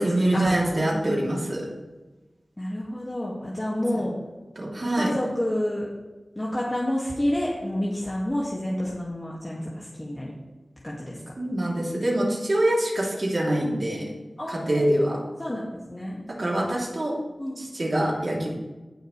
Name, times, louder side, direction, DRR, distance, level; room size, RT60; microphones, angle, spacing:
voice 1, 0.0-1.7 4.5-5.1 11.4-14.1 14.5-15.2 16.4-17.1 17.6-18.5, right 1 dB, 55° right, -3 dB, 3.2 m, -24 dB
voice 2, 2.6-4.1 4.9-5.9 6.4-10.3 10.8-11.2 14.4-14.9 15.4-16.2 17.4-17.6, left 1 dB, 25° left, -5 dB, 2.1 m, -29 dB
19.0 x 6.5 x 3.3 m, 1.2 s
wide cardioid pair, 60°, 0 cm